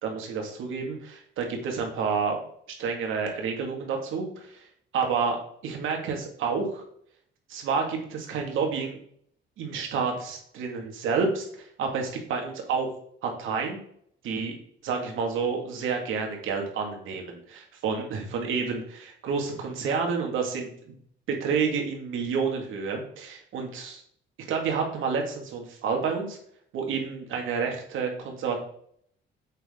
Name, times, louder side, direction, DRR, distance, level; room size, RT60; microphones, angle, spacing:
voice 1, 0.0-2.4 2.8-4.7 4.9-5.4 5.6-6.8 7.5-9.0 9.6-12.9 13.2-13.8 14.2-14.5 14.8-20.9 21.3-24.0 24.5-26.4 26.7-28.6, right 5 dB, 85° right, 2 dB, 2.1 m, -29 dB
8.2 x 7.7 x 3.7 m, 0.64 s
cardioid pair, 90°, 20 cm